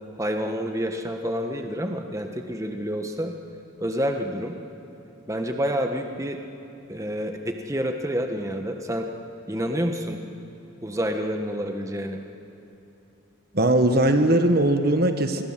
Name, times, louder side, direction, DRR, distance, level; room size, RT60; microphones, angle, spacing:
voice 1, 0.2-3.3 3.8-4.6 5.3-6.4 6.9-9.1 9.5-10.2 10.8-12.2, equal, 15° right, 4 dB, 1.4 m, -28 dB
voice 2, 13.5-15.4, right 1 dB, 50° right, 7 dB, 1.2 m, -20 dB
27.0 x 22.0 x 7.5 m, 2.9 s
head